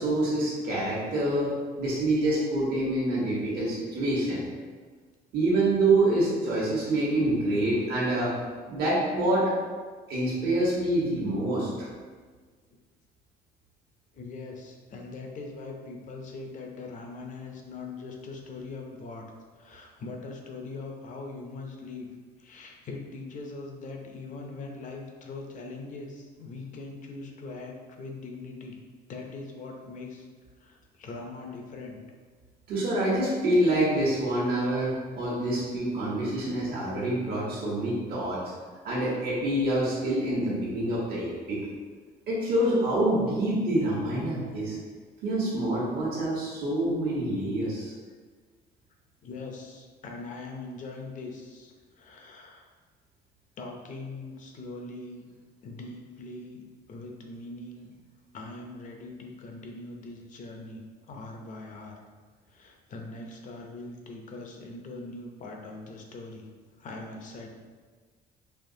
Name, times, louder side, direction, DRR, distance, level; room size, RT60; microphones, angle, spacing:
voice 1, 0.0-1.5 1.8-4.5 5.3-8.3 8.7-9.5 10.1-11.9 32.7-38.5 38.8-41.6 42.3-44.8 45.2-47.9, right 1 dB, 65° right, -7 dB, 1.2 m, -26 dB
voice 2, 14.1-19.3 19.6-22.1 22.4-28.8 29.1-30.3 30.6-32.0 49.2-52.6 53.6-55.3 55.6-56.6 56.9-57.9 58.3-60.8 61.1-62.0 62.5-66.5 66.8-67.5, left 3 dB, 50° left, 1 dB, 0.7 m, -41 dB
4.4 x 2.9 x 2.7 m, 1.5 s
cardioid pair, 110°, 17 cm